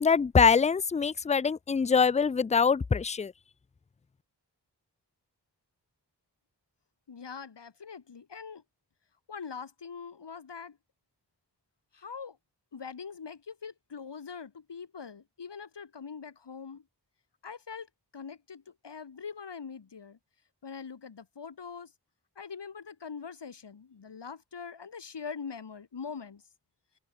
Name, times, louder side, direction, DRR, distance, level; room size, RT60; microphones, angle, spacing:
voice 1, 0.0-3.3, left 5 dB, 20° left, 0.3 m, -24 dB
voice 2, 7.1-8.6 9.3-10.8 11.9-12.4 12.7-16.8 17.4-17.9 18.1-20.2 20.6-21.9 22.4-26.4, left 6 dB, 80° left, 2.0 m, -43 dB
wide cardioid pair, 50°, 41 cm